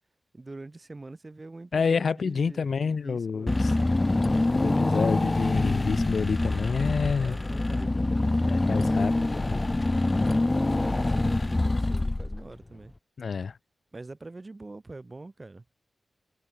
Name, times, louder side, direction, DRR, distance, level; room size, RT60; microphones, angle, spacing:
voice 1, 0.3-3.6 7.2-9.8 10.5-12.9 13.9-15.6, right 2 dB, 25° right, 6.5 m, -45 dB
voice 2, 1.7-3.7 4.5-7.4 8.5-9.6 13.2-13.6, left 5 dB, 65° left, 0.8 m, -28 dB
Car / Engine, 3.5-12.6, left 2 dB, 20° left, 0.6 m, -25 dB
wide cardioid pair, 135°, 0 cm